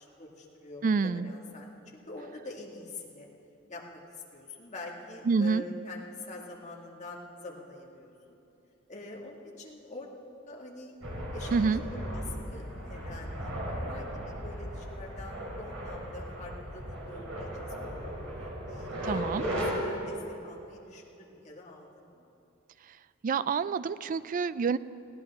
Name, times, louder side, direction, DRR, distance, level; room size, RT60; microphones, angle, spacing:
voice 1, 0.0-3.3 3.7-8.1 8.9-10.1 10.5-10.9 11.3-17.5 17.8-18.2 18.7-19.3 19.7-22.3, left 2 dB, 35° left, -2 dB, 1.9 m, -45 dB
voice 2, 0.8-1.3 5.3-5.6 11.5-11.8 19.0-19.4 23.2-24.8, right 5 dB, 40° right, 16 dB, 0.3 m, -27 dB
sound 1, 11.0-19.7, equal, 70° right, 3.7 m, -37 dB
20.5 x 16.0 x 3.6 m, 2.9 s
head